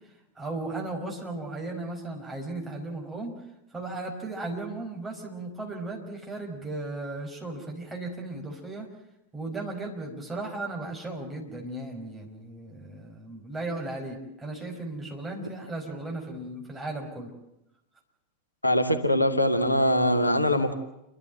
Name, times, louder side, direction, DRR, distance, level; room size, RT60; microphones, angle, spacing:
voice 1, 0.3-3.3 3.7-8.9 9.3-17.3, right 2 dB, 15° right, 1 dB, 5.2 m, -36 dB
voice 2, 18.6-20.7, left 1 dB, 85° left, 7 dB, 1.7 m, -22 dB
29.5 x 12.5 x 9.2 m, 0.88 s
figure-of-eight pair, 90°, 0 cm